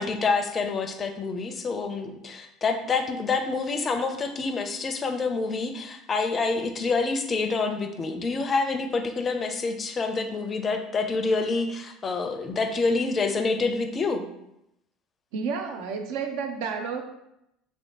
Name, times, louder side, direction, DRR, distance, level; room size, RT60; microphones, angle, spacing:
voice 1, 0.0-14.3, left 4 dB, 35° left, 6 dB, 0.4 m, -27 dB
voice 2, 15.3-17.0, right 5 dB, 70° right, 5 dB, 0.4 m, -31 dB
3.0 x 2.7 x 2.9 m, 0.82 s
hypercardioid pair, 85°, 0 cm